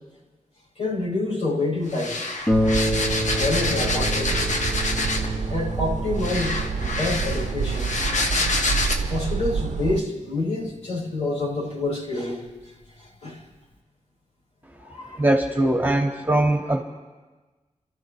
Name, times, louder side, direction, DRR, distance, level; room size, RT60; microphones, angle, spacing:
voice 1, 0.8-2.2 3.3-4.5 5.5-8.0 9.1-12.5 13.2-13.4 14.9-15.2, left 2 dB, 60° left, -5 dB, 5.6 m, -27 dB
sound 1, 1.9-5.4 6.2-9.0, left 2 dB, 80° left, 1.4 m, -27 dB
Harp, 2.5-11.6 12.5-12.6 13.0-13.1, left 1 dB, 15° left, 1.2 m, -30 dB
sound 2, 2.5-10.0, right 6 dB, 70° right, 0.6 m, -28 dB
voice 2, 15.2-16.8, right 1 dB, 15° right, 1 dB, 1.8 m, -21 dB
29.5 x 13.5 x 3.2 m, 1.2 s
cardioid pair, 60°, 13 cm